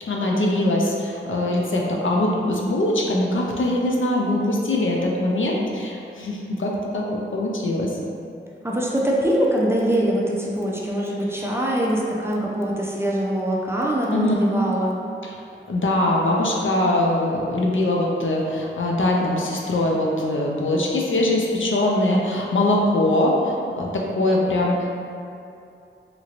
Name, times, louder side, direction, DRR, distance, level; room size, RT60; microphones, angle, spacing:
voice 1, 0.0-8.0 14.1-14.3 15.2-15.4 15.7-25.0, left 1 dB, 65° left, -2 dB, 0.4 m, -22 dB
voice 2, 8.6-15.0, right 1 dB, 10° right, -5 dB, 0.5 m, -23 dB
2.9 x 2.5 x 2.9 m, 2.6 s
wide cardioid pair, 45°, 21 cm